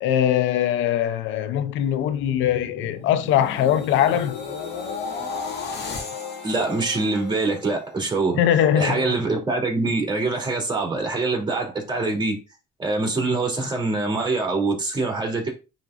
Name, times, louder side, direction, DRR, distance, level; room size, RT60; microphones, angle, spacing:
voice 1, 0.0-4.4 8.4-9.1, left 10 dB, 90° left, 0.6 m, -21 dB
sound 1, 2.2-8.2 8.6-8.9, left 5 dB, 60° left, 2.0 m, -34 dB
voice 2, 6.4-8.4 8.7-12.3 12.8-15.5, right 3 dB, 25° right, 3.0 m, -24 dB
9.9 x 3.8 x 2.5 m
cardioid pair, 90°, 19 cm